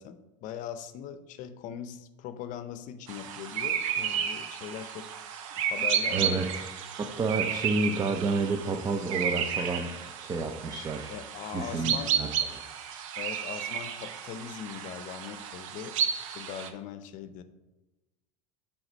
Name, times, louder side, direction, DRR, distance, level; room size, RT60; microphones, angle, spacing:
voice 1, 0.0-5.1 5.5-6.4 11.1-12.2 13.2-15.9 16.3-17.4, left 9 dB, 50° left, 12 dB, 0.6 m, -40 dB
sound 1, 3.1-16.7, right 8 dB, 90° right, 0.7 m, -32 dB
voice 2, 6.1-6.6 7.0-9.9 10.2-11.2 11.5-12.3, right 3 dB, 25° right, 6 dB, 0.5 m, -30 dB
7.8 x 3.5 x 5.3 m, 1.1 s
supercardioid pair, 120°, 16 cm